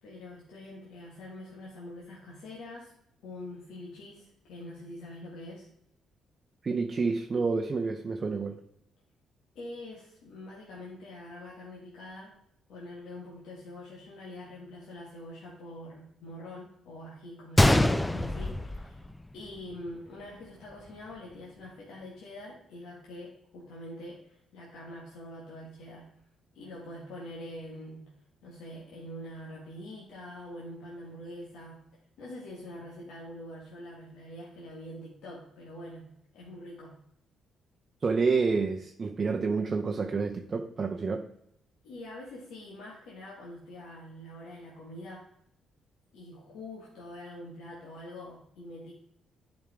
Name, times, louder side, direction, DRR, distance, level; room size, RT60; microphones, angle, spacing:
voice 1, 0.0-2.9 3.2-5.7 9.6-12.3 12.7-19.1 19.3-26.1 26.5-28.1 28.4-31.8 32.2-37.0 41.8-45.3 46.1-48.9, left 1 dB, 80° left, 1.8 m, -44 dB
voice 2, 6.6-8.6 38.0-41.3, right 4 dB, 40° right, 0.6 m, -29 dB
Gunshot gunfire, 17.6-19.6 19.9-20.0 20.7-20.9, left 1 dB, 10° left, 0.5 m, -24 dB
10.5 x 5.0 x 3.6 m
cardioid pair, 90°, 0 cm